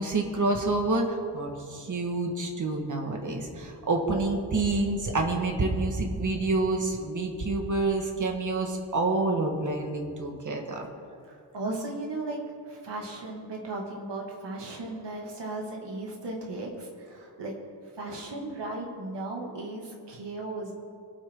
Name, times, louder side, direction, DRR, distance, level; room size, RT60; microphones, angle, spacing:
voice 1, 0.0-10.9, right 2 dB, 45° right, 2 dB, 1.7 m, -28 dB
voice 2, 11.3-12.4 12.6-17.5 18.0-20.8, right 2 dB, 75° right, -1 dB, 2.6 m, -36 dB
25.0 x 8.9 x 3.9 m, 2.5 s
wide cardioid pair, 140°, 43 cm